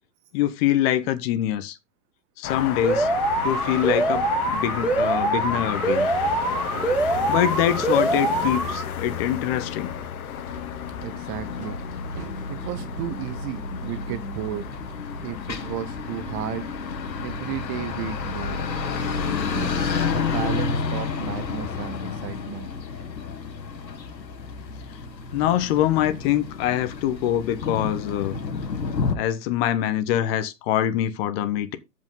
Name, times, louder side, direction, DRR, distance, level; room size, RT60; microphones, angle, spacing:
voice 1, 0.3-1.8 2.4-3.1 3.4-6.1 7.3-9.9 25.3-28.4 29.1-31.8, left 12 dB, 35° left, 1.3 m, -24 dB
sound 1, 2.4-22.0, left 7 dB, 60° left, 1.7 m, -33 dB
Alarm, 2.8-8.8, right 2 dB, 5° right, 1.6 m, -24 dB
sound 2, 10.3-29.2, left 5 dB, 85° left, 1.9 m, -31 dB
voice 2, 11.0-11.8 12.1-14.7 15.2-16.7 17.2-19.1 19.5-22.7 25.0-25.1, right 11 dB, 25° right, 0.6 m, -34 dB
14.0 x 5.3 x 3.9 m
hypercardioid pair, 125°, 50 cm